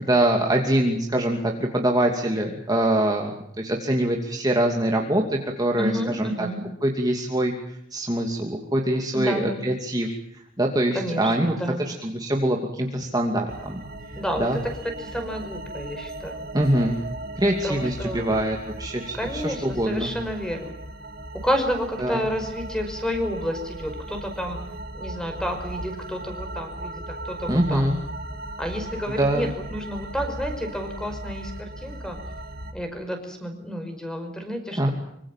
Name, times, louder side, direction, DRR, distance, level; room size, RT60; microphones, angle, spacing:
voice 1, 0.0-6.5 6.8-7.5 7.9-13.8 14.4-14.6 16.5-17.0 17.3-20.1 22.0-22.2 27.5-28.0 29.2-29.5 34.7-34.9, right 1 dB, 20° right, 1 dB, 2.7 m, -24 dB
voice 2, 5.8-6.6 9.1-9.6 10.9-11.9 14.2-14.5 15.0-16.5 17.6-18.4 19.1-20.7 21.4-24.6 24.9-27.9 28.6-32.2 32.7-34.9, equal, 5° left, 6 dB, 5.5 m, -30 dB
sound 1, 13.5-32.7, right 1 dB, 50° right, 3.3 m, -37 dB
25.5 x 25.0 x 7.5 m, 0.73 s
head